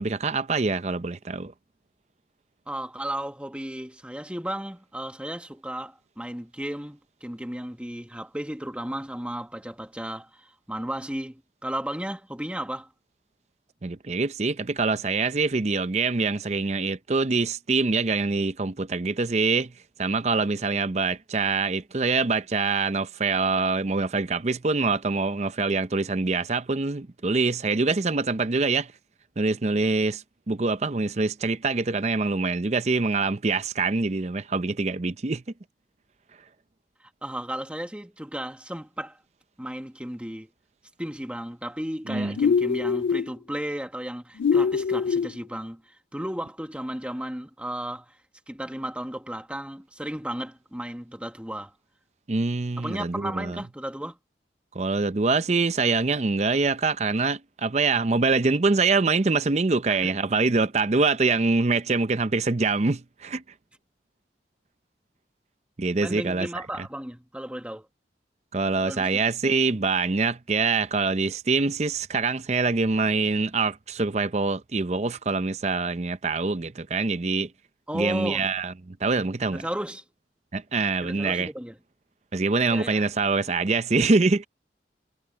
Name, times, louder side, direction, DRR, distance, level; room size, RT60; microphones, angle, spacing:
voice 1, 0.0-1.5 13.8-19.7 20.0-28.9 29.4-35.4 42.1-42.4 52.3-53.6 54.7-63.4 65.8-66.5 68.5-77.5 77.9-79.6 80.5-81.5 82.3-84.5, right 3 dB, 40° right, 0.6 m, -25 dB
voice 2, 2.7-12.9 37.0-39.2 39.6-40.5 41.0-48.2 48.5-51.7 52.8-54.2 59.9-60.1 66.0-67.9 68.8-69.2 77.9-78.5 79.5-80.0 81.0-81.8 82.6-83.0, right 1 dB, 5° right, 1.8 m, -34 dB
sound 1, 42.4-43.3 44.4-45.3, left 6 dB, 85° left, 0.3 m, -23 dB
head